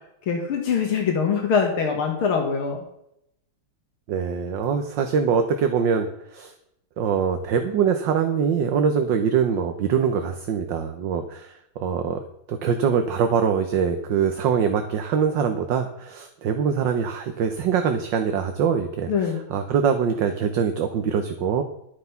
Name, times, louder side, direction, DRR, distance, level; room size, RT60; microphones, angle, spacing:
voice 1, 0.3-2.9 19.1-19.4, left 6 dB, 85° left, 2 dB, 2.4 m, -23 dB
voice 2, 4.1-6.5 7.0-12.2 12.5-21.6, right 7 dB, 65° right, 6 dB, 1.6 m, -23 dB
11.5 x 9.6 x 5.7 m, 0.78 s
omnidirectional pair, 2.3 m